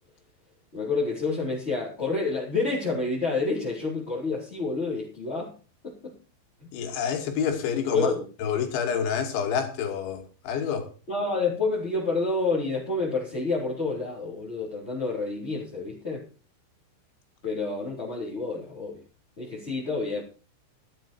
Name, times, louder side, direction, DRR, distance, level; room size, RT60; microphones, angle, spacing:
voice 1, 0.7-5.5 5.8-6.1 7.9-8.2 11.1-16.2 17.4-19.0 19.4-20.2, left 3 dB, 15° left, 3.1 m, -28 dB
voice 2, 6.7-8.1 8.4-10.9, left 7 dB, 70° left, 4.6 m, -28 dB
13.0 x 12.5 x 4.5 m
omnidirectional pair, 5.6 m